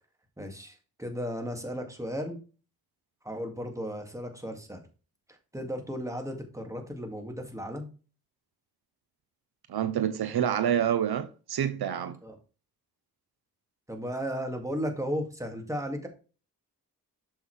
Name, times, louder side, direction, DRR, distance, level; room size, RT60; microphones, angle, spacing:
voice 1, 0.4-2.4 3.2-4.8 5.5-7.9 12.2-12.4 13.9-16.1, equal, 10° right, 2.1 m, -35 dB
voice 2, 9.7-12.2, right 9 dB, 85° right, 0.7 m, -27 dB
7.2 x 5.5 x 3.2 m
cardioid pair, 60°, 37 cm